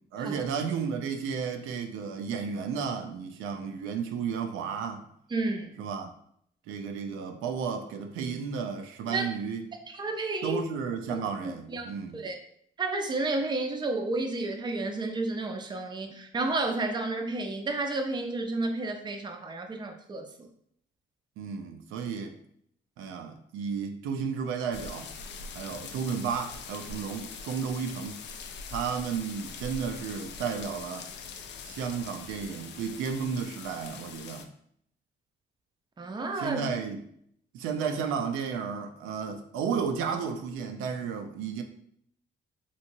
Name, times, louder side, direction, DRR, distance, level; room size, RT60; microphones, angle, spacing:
voice 1, 0.1-5.1 5.8-6.1 6.7-9.7 10.4-12.2 21.4-22.4 23.0-25.1 25.5-28.2 28.7-31.1 31.6-34.5 36.3-37.0 37.5-41.6, right 6 dB, 90° right, 5 dB, 0.4 m, -33 dB
voice 2, 5.3-5.9 9.1-9.3 9.9-10.6 11.1-12.4 12.8-20.5 36.0-36.6, right 2 dB, 20° right, 4 dB, 0.5 m, -31 dB
sound 1, 24.7-34.5, left 5 dB, 65° left, 0.4 m, -43 dB
2.9 x 2.7 x 2.6 m, 0.67 s
cardioid pair, 90°, 20 cm